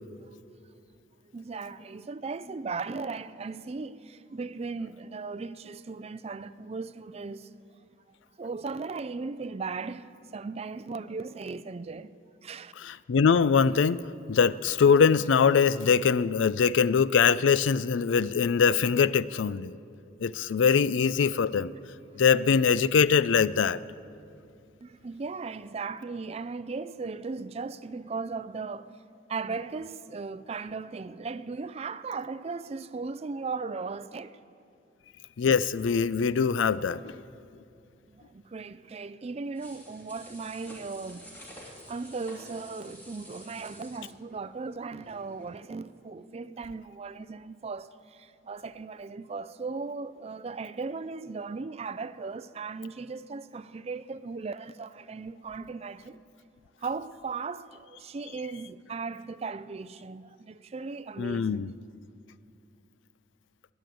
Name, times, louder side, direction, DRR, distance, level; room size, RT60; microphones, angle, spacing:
voice 1, 1.3-7.5 8.4-12.1 12.4-12.7 24.8-28.9 29.3-34.4 38.1-41.2 41.6-56.2 56.8-61.7, right 4 dB, 35° right, 0.4 m, -37 dB
voice 2, 12.8-19.7 20.2-21.7 22.2-23.8 35.4-37.2 61.2-61.7, left 6 dB, 85° left, 0.4 m, -23 dB
sound 1, 39.6-45.6 45.9-46.0, equal, 10° left, 2.5 m, -50 dB
21.0 x 9.0 x 7.8 m
head